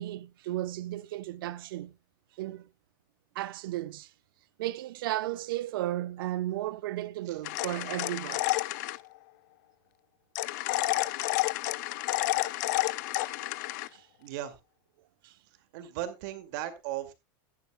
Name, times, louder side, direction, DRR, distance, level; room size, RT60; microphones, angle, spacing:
voice 1, 0.0-1.9 2.4-2.7 3.3-4.1 4.6-8.5 13.9-14.1 15.2-15.3, right 15 dB, 75° right, 0.8 m, -34 dB
sound 1, 7.4-9.0 10.4-13.9, left 19 dB, 55° left, 0.5 m, -30 dB
voice 2, 14.2-14.5 15.7-17.1, right 12 dB, 55° right, 2.2 m, -36 dB
15.0 x 11.0 x 2.2 m
supercardioid pair, 160°, 12 cm